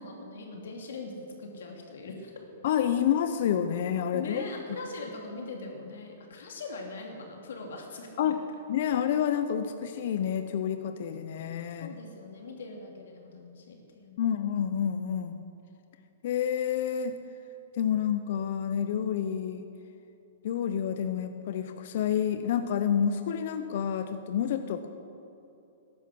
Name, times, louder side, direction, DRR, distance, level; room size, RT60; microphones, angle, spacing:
voice 1, 0.0-1.1 1.4-2.5 4.1-8.3 11.8-14.4, left 3 dB, 75° left, 1 dB, 2.8 m, -41 dB
voice 2, 2.6-4.4 8.2-8.4 8.7-11.9 14.2-15.4 16.2-17.2 17.7-19.7 20.4-24.9, left 9 dB, 60° left, 9 dB, 0.7 m, -29 dB
14.0 x 11.0 x 6.4 m, 2.9 s
hypercardioid pair, 135°, 0 cm